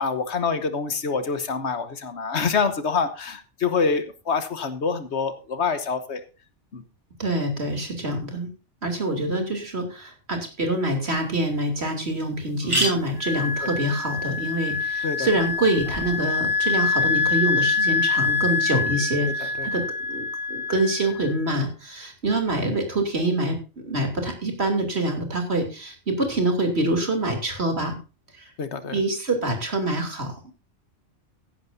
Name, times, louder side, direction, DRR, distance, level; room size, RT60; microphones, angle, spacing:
voice 1, 0.0-6.2 6.7-6.8 12.6-12.9 13.6-13.7 15.0-15.3 19.4-19.7 22.6-22.8 28.6-29.0, left 5 dB, 70° left, 11 dB, 1.4 m, -26 dB
voice 2, 7.2-8.5 8.8-28.0 28.4-28.5 28.9-30.5, right 1 dB, 60° right, 4 dB, 3.3 m, -26 dB
sound 1, 11.7-11.8 12.0-12.1 12.4-16.2, equal, 25° right, 6.2 m, -32 dB
Wind instrument woodwind instrument, 13.2-21.5, left 4 dB, 10° left, 0.9 m, -25 dB
15.0 x 11.5 x 2.7 m, 0.31 s
omnidirectional pair, 1.2 m